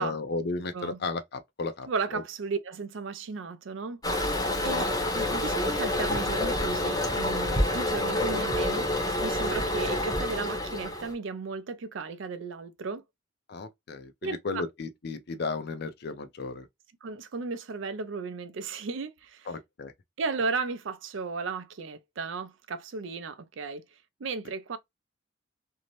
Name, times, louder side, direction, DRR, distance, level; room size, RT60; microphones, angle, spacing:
voice 1, 0.0-2.2 4.6-4.7 13.5-16.7 19.5-19.9, left 3 dB, 55° left, 0.5 m, -34 dB
voice 2, 1.9-4.3 4.6-4.8 5.1-8.9 9.2-13.0 14.2-14.6 17.0-19.5 20.2-23.8 24.2-24.8, right 4 dB, 70° right, 0.4 m, -35 dB
Toilet flush, 4.0-11.1, left 1 dB, 20° left, 0.7 m, -28 dB
2.6 x 2.0 x 3.0 m
head